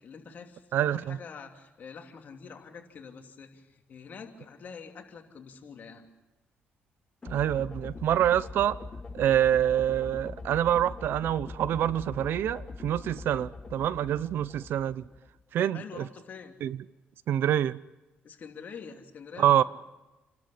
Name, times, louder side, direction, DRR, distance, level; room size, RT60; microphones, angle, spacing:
voice 1, 0.0-6.1 15.6-16.6 18.2-19.6, left 6 dB, 50° left, 2.9 m, -46 dB
voice 2, 0.7-1.2 7.3-8.8 9.1-15.0 15.5-16.1 16.6-16.8 17.3-17.8 19.4-19.6, right 11 dB, 70° right, 0.6 m, -26 dB
sound 1, 7.2-15.4, left 3 dB, 25° left, 1.2 m, -42 dB
29.0 x 13.0 x 8.5 m
cardioid pair, 110°, 4 cm